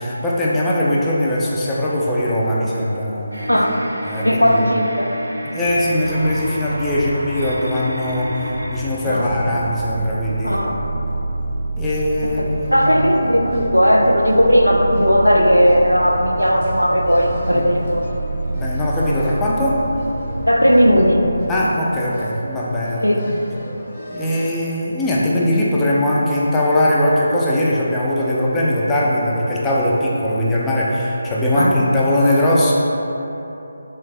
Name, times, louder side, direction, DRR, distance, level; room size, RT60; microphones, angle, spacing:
voice 1, 0.0-3.5 4.0-4.6 5.5-10.6 11.8-12.9 17.5-17.7 18.5-19.8 21.5-23.4 24.1-32.7, left 1 dB, 10° left, -6 dB, 0.3 m, -20 dB
sound 1, 3.3-8.8, equal, 75° right, 0.5 m, -31 dB
voice 2, 4.2-5.1 9.1-9.3 10.4-10.7 12.2-12.4 12.7-18.2 20.4-21.4 23.0-23.2 31.5-31.8, equal, 90° left, 1 dB, 0.4 m, -16 dB
sound 2, 5.6-21.4, right 2 dB, 30° right, 0.7 m, -28 dB
sound 3, 12.4-24.5, equal, 30° left, 0.7 m, -37 dB
3.3 x 3.2 x 3.2 m, 3.0 s
figure-of-eight pair, 155°, 0 cm